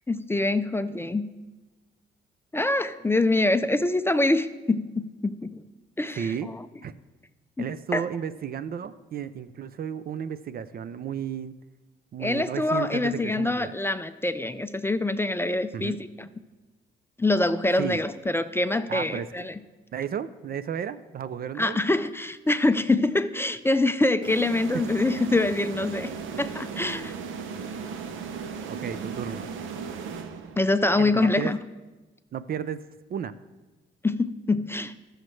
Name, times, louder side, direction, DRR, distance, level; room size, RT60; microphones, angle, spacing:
voice 1, 0.1-1.3 2.5-5.6 6.0-6.6 7.6-7.7 7.9-8.0 12.2-16.3 17.2-19.6 21.6-26.1 26.4-27.1 30.6-31.6 34.0-34.9, left 2 dB, 10° left, 11 dB, 0.4 m, -25 dB
voice 2, 6.1-6.5 6.8-7.0 7.6-11.5 12.1-13.7 15.7-16.0 17.8-18.0 18.9-19.3 19.9-21.8 27.5-27.7 28.7-29.5 31.0-31.5 32.3-33.3, right 8 dB, 50° right, 15 dB, 0.5 m, -33 dB
sound 1, 24.2-30.8, right 5 dB, 85° right, 0.8 m, -36 dB
19.0 x 6.5 x 3.2 m, 1.2 s
cardioid pair, 90°, 20 cm